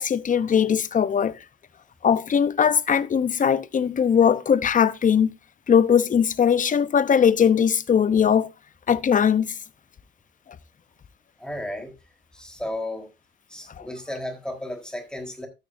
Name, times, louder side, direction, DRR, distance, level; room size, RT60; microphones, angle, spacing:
voice 1, 0.0-1.4 2.0-5.3 5.7-8.5 8.9-9.5 13.8-13.9, left 7 dB, 40° left, 0.8 m, -20 dB
voice 2, 11.4-11.9 12.3-13.1 13.5-15.5, left 1 dB, 5° left, 4.0 m, -33 dB
13.0 x 9.8 x 2.7 m
cardioid pair, 90°, 20 cm